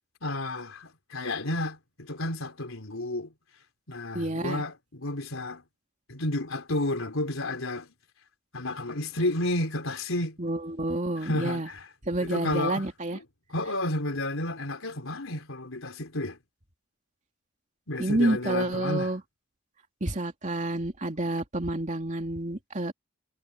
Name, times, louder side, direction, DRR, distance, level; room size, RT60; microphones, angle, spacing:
voice 1, 0.2-3.3 3.9-5.6 6.1-7.9 8.5-10.4 11.2-11.9 12.2-13.2 13.5-16.4 17.9-19.1, left 1 dB, 85° left, 3.7 m, -31 dB
voice 2, 4.1-4.6 10.4-11.7 12.1-13.2 18.0-19.2 20.0-22.9, right 1 dB, 35° right, 2.7 m, -29 dB
head